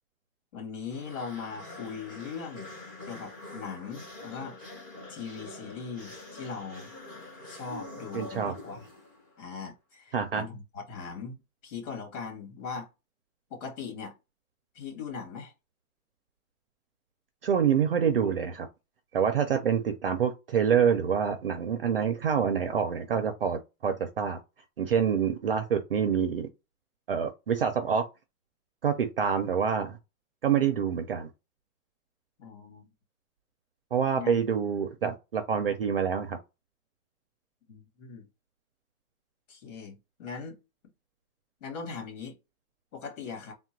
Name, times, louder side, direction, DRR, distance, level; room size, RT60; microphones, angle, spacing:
voice 1, 0.5-2.7 3.1-4.6 5.1-6.9 7.5-8.9 9.4-12.9 13.5-14.1 14.7-15.5 32.4-32.9 34.2-34.4 37.7-38.2 39.5-40.6 41.6-42.3 42.9-43.5, left 5 dB, 55° left, 2.4 m, -40 dB
sound 1, 0.9-9.4, left 2 dB, 15° left, 0.5 m, -45 dB
voice 2, 8.1-8.6 10.1-10.4 17.4-18.7 19.1-24.4 24.8-26.5 27.1-28.1 28.8-30.0 30.4-31.3 33.9-36.4, right 7 dB, 40° right, 0.4 m, -26 dB
3.7 x 2.2 x 4.4 m
hypercardioid pair, 170°, 44 cm